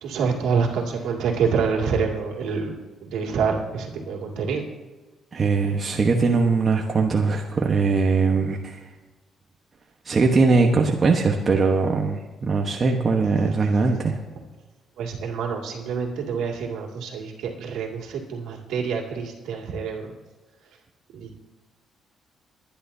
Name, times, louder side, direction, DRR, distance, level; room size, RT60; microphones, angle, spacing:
voice 1, 0.0-4.6 15.0-20.1 21.1-21.4, right 5 dB, 85° right, 0 dB, 2.4 m, -27 dB
voice 2, 5.3-8.8 10.0-14.2, right 4 dB, 40° right, 2 dB, 1.2 m, -21 dB
22.5 x 10.5 x 2.8 m, 1.2 s
cardioid pair, 90°, 0 cm